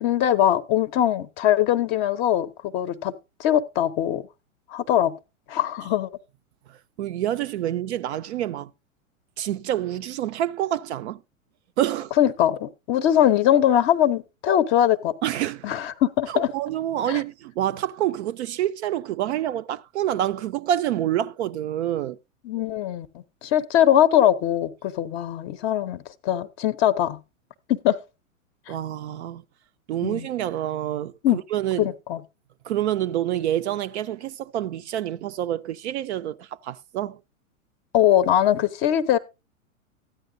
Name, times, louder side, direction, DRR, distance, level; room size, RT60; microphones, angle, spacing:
voice 1, 0.0-3.1 3.4-4.2 4.7-5.1 5.5-6.1 12.2-15.1 15.6-16.5 17.1-17.2 22.4-27.2 27.7-28.0 28.7-28.8 30.0-30.3 31.2-31.4 31.8-32.2 37.9-39.2, left 11 dB, 30° left, 0.6 m, -21 dB
voice 2, 7.0-8.7 9.4-11.2 11.8-12.1 15.2-15.7 16.3-22.2 28.7-29.4 29.9-31.9 32.7-37.2, right 12 dB, 55° right, 0.5 m, -27 dB
13.5 x 9.2 x 2.6 m
hypercardioid pair, 105°, 42 cm